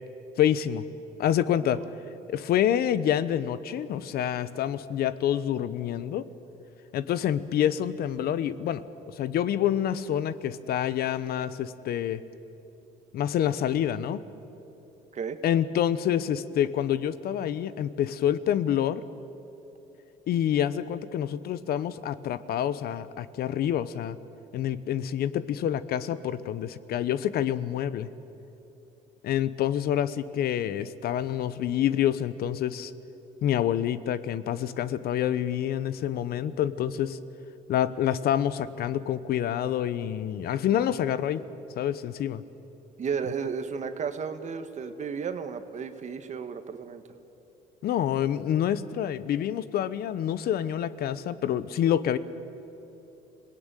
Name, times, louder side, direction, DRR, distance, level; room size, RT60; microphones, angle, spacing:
voice 1, 0.4-0.8 1.2-1.8 2.3-6.3 6.9-12.2 13.1-14.2 15.4-19.0 20.3-24.2 24.5-28.1 29.2-32.9 33.4-37.2 37.7-41.4 41.8-42.4 47.8-52.2, left 10 dB, 65° left, 15 dB, 0.9 m, -27 dB
voice 2, 43.0-47.0, right 6 dB, 45° right, 9 dB, 1.7 m, -33 dB
27.0 x 18.0 x 9.1 m, 3.0 s
cardioid pair, 110°, 17 cm